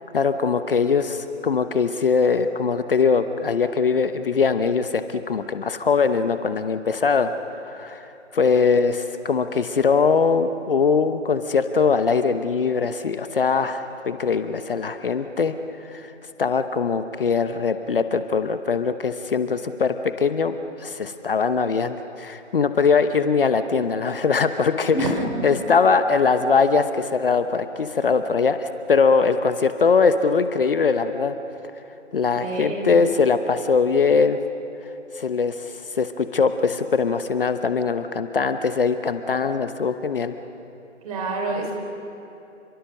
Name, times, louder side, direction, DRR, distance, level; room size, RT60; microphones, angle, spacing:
voice 1, 0.1-7.3 7.6-8.1 8.3-15.5 15.8-16.1 16.4-24.9 25.4-31.3 32.1-34.4 35.1-40.4, left 5 dB, 45° left, 10 dB, 1.0 m, -21 dB
voice 2, 24.8-25.4 32.4-33.1 41.0-41.7, right 2 dB, 30° right, 1 dB, 4.1 m, -27 dB
29.0 x 23.0 x 6.5 m, 2.9 s
figure-of-eight pair, 150°, 37 cm